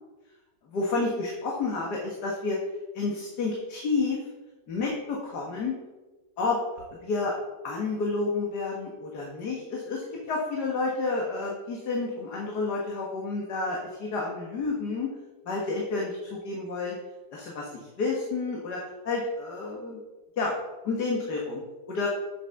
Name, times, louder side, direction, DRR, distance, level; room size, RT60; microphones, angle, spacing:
voice 1, 0.7-2.6 2.9-4.2 4.7-5.7 6.4-6.6 7.0-7.3 7.6-15.1 15.5-17.0 17.3-18.8 19.1-20.0 20.4-20.5 20.8-21.6 21.9-22.1, left 3 dB, 60° left, -2 dB, 2.0 m, -30 dB
8.2 x 6.7 x 5.8 m, 1.1 s
omnidirectional pair, 2.0 m